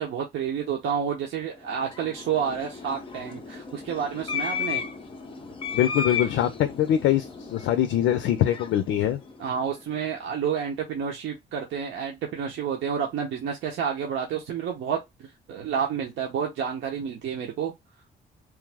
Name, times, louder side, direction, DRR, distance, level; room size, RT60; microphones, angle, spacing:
voice 1, 0.0-4.9 9.4-15.0 15.5-17.7, right 7 dB, 75° right, 0.9 m, -29 dB
sound 1, 1.6-10.1, left 6 dB, 25° left, 0.6 m, -35 dB
voice 2, 5.7-9.2, left 11 dB, 80° left, 0.4 m, -23 dB
3.1 x 2.0 x 3.3 m
cardioid pair, 90°, 20 cm